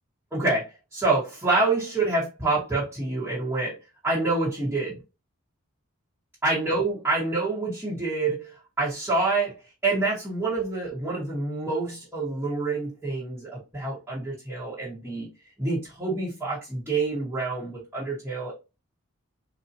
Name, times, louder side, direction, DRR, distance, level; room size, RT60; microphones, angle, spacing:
voice 1, 0.3-3.7 4.0-5.0 6.4-9.6 9.8-15.3 15.6-18.5, right 3 dB, 10° right, 1.5 m, -27 dB
4.6 x 2.8 x 2.7 m
head